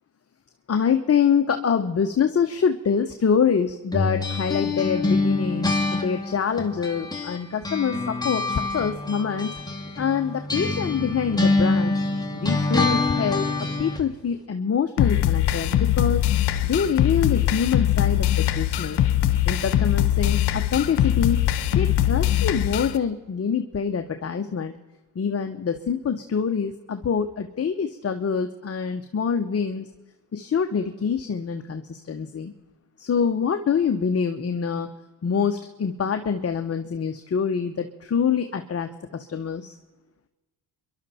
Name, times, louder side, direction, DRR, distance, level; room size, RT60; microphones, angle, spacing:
voice 1, 0.7-9.5 10.0-12.0 12.3-16.2 16.6-19.0 19.5-21.4 21.7-24.7 25.1-29.9 30.3-32.5 33.0-34.9 35.2-39.8, left 6 dB, 35° left, 6 dB, 1.0 m, -25 dB
sound 1, 3.9-7.4 7.6-14.0, left 2 dB, 10° left, 2.1 m, -25 dB
sound 2, 15.0-23.0, left 12 dB, 60° left, 1.1 m, -22 dB
26.5 x 11.5 x 4.3 m, 1.2 s
supercardioid pair, 70°, 44 cm